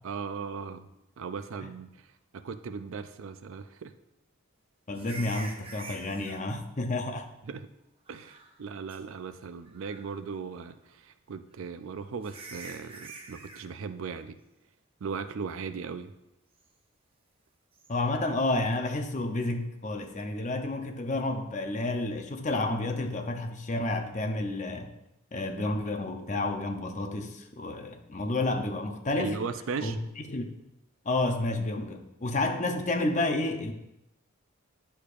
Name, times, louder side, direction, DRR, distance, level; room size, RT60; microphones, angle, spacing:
voice 1, 0.0-0.9 1.2-2.1 2.3-3.9 7.5-7.7 8.1-14.4 15.0-16.1 29.2-30.0, right 5 dB, 65° right, 0.4 m, -37 dB
voice 2, 4.9-7.3 17.9-24.9 25.3-29.4 29.8-30.0 30.3-30.5 31.0-33.7, left 2 dB, 35° left, 0.7 m, -30 dB
sound 1, 4.9-6.4 8.1-8.6 8.9-9.0 9.7-10.2 11.5-11.6 12.2-13.7 17.7-17.9, right 3 dB, 25° right, 0.7 m, -45 dB
10.0 x 6.6 x 2.5 m
head